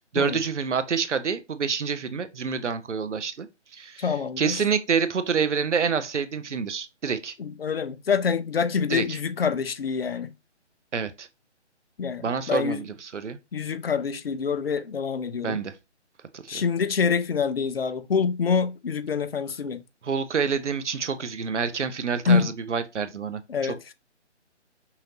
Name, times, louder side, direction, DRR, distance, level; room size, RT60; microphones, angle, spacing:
voice 1, 0.0-3.5 3.7-4.1 4.4-7.3 8.9-9.2 10.9-11.3 12.2-13.4 15.4-15.7 16.3-16.6 20.0-23.9, right 6 dB, 75° right, 0.7 m, -27 dB
voice 2, 4.0-4.6 7.4-10.3 12.0-12.8 13.5-15.6 16.5-19.8 22.3-22.5 23.5-23.8, left 6 dB, 55° left, 0.5 m, -26 dB
5.6 x 2.5 x 2.8 m
figure-of-eight pair, 150°, 36 cm